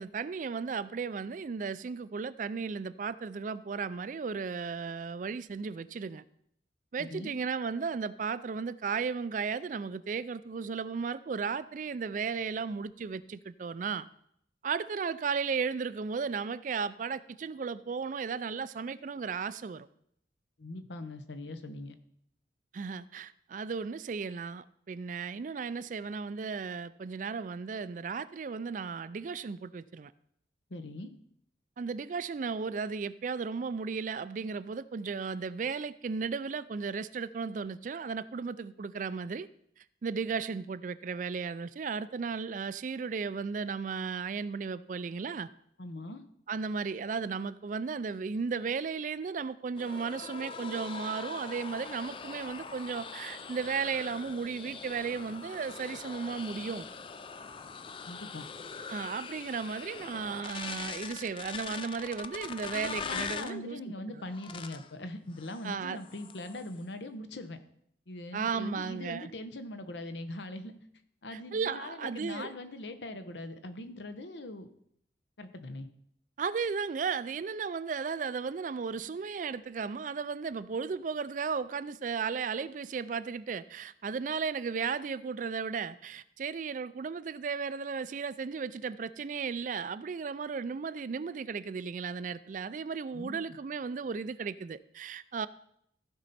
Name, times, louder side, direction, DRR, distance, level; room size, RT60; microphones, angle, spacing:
voice 1, 0.0-6.2 6.9-14.1 14.6-19.9 22.7-30.1 31.8-39.5 39.8-45.5 46.5-56.9 58.9-63.8 65.6-66.0 68.3-69.3 71.3-72.5 76.4-95.5, right 5 dB, 45° right, 0.3 m, -35 dB
voice 2, 7.0-7.4 20.6-22.0 30.7-31.1 45.8-46.2 58.1-58.4 62.7-67.6 68.1-70.8 71.2-74.7 75.4-75.9 93.1-93.4, left 1 dB, 80° left, 0.9 m, -41 dB
sound 1, 49.8-63.6 64.3-64.9 65.4-65.7 66.0-66.7, left 5 dB, 30° left, 0.4 m, -42 dB
15.0 x 5.5 x 4.2 m
head